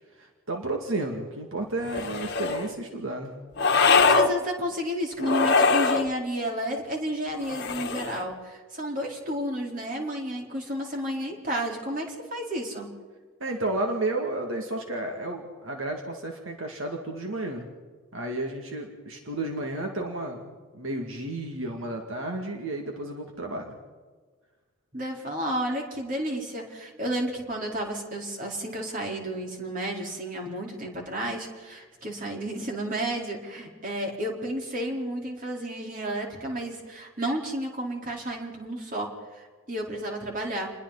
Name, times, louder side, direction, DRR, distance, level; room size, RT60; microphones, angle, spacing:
voice 1, 0.2-3.3 13.4-17.7 18.1-23.8, right 2 dB, 75° right, 2 dB, 2.4 m, -32 dB
sound 1, 1.8-2.7 3.6-4.3 5.2-6.1 7.4-8.2, left 4 dB, 50° left, 1.4 m, -22 dB
voice 2, 3.9-12.9 24.9-40.7, equal, 40° right, 0 dB, 4.2 m, -31 dB
29.0 x 21.5 x 4.2 m, 1.4 s
head